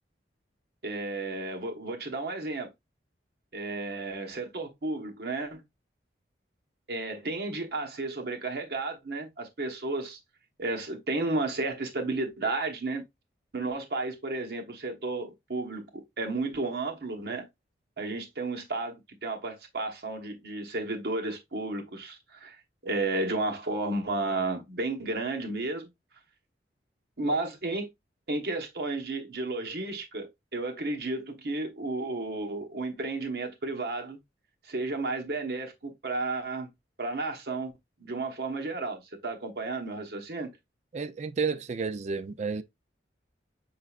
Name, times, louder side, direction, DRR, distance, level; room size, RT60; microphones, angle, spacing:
voice 1, 0.8-2.7 3.5-5.6 6.9-10.2 10.6-13.0 13.5-17.5 18.0-25.9 27.2-27.9 28.3-34.2 34.6-36.7 37.0-37.7 38.0-40.6, right 2 dB, 60° right, 1.1 m, -33 dB
voice 2, 40.9-42.6, right 5 dB, 40° right, 0.4 m, -31 dB
5.6 x 3.8 x 2.4 m
head